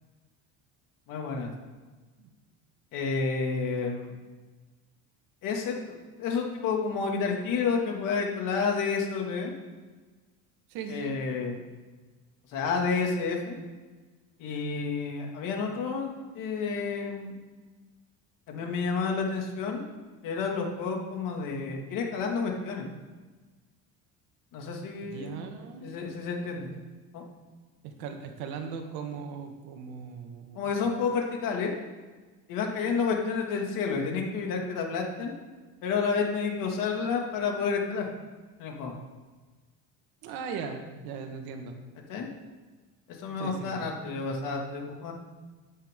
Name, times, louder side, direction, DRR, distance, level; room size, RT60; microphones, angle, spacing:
voice 1, 1.1-1.5 2.9-4.1 5.4-9.5 10.9-11.6 12.5-13.6 14.4-17.3 18.5-19.8 20.2-22.9 24.5-25.3 25.8-26.7 27.1-27.2 30.6-31.7 32.5-35.3 35.8-38.1 38.6-38.9 42.1-42.3 43.2-45.1, left 5 dB, 60° left, 1 dB, 2.3 m, -30 dB
voice 2, 10.7-11.1 25.0-26.0 27.8-30.7 40.2-41.8 43.4-43.9, right 6 dB, 80° right, 5 dB, 1.8 m, -39 dB
14.0 x 10.0 x 3.8 m, 1.3 s
cardioid pair, 160°, 37 cm